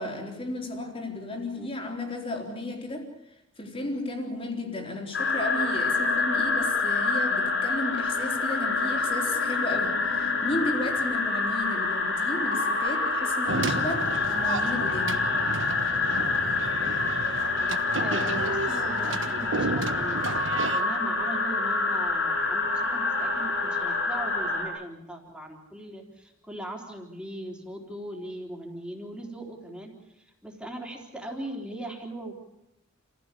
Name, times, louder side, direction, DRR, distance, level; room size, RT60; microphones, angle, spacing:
voice 1, 0.0-3.1 3.6-15.3, left 2 dB, 25° left, 3.8 m, -34 dB
sound 1, 5.1-24.6, left 3 dB, 70° left, 6.7 m, -27 dB
sound 2, 13.5-20.8, right 3 dB, 65° right, 1.4 m, -32 dB
voice 2, 18.0-32.3, right 1 dB, 5° right, 3.8 m, -39 dB
28.0 x 15.5 x 8.4 m
head